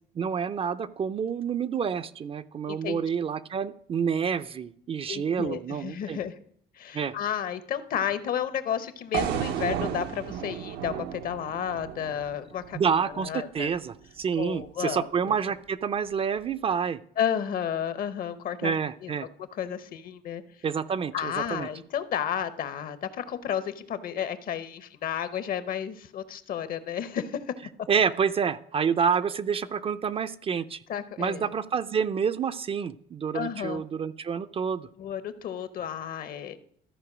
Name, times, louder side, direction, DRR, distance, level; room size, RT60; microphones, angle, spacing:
voice 1, 0.2-6.2 6.9-7.1 12.7-17.0 18.6-19.3 20.6-21.7 27.9-30.8 31.2-34.9, right 7 dB, 35° right, 14 dB, 0.4 m, -28 dB
voice 2, 2.7-3.0 5.1-6.4 6.7-13.7 14.4-15.4 17.2-18.7 19.0-19.1 19.4-20.4 21.1-27.5 30.9-31.5 33.3-33.8 35.0-36.6, left 9 dB, 60° left, 13 dB, 0.9 m, -32 dB
sound 1, 9.1-13.3, right 9 dB, 85° right, 0.8 m, -33 dB
13.5 x 4.6 x 6.1 m, 0.62 s
cardioid pair, 110°, 17 cm